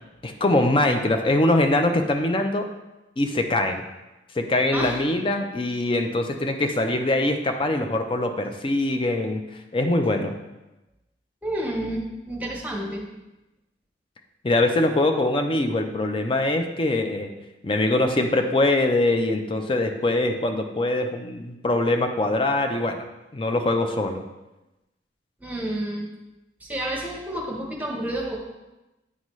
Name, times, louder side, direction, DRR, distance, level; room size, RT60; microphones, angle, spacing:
voice 1, 0.2-2.6 3.2-3.8 4.4-9.4 9.7-10.3 14.4-17.3 17.6-23.1 23.3-24.2, left 2 dB, 30° left, 5 dB, 0.5 m, -23 dB
voice 2, 11.4-13.1 25.4-26.1 26.6-28.4, right 1 dB, 10° right, -1 dB, 0.9 m, -30 dB
9.6 x 3.9 x 3.1 m, 1.0 s
head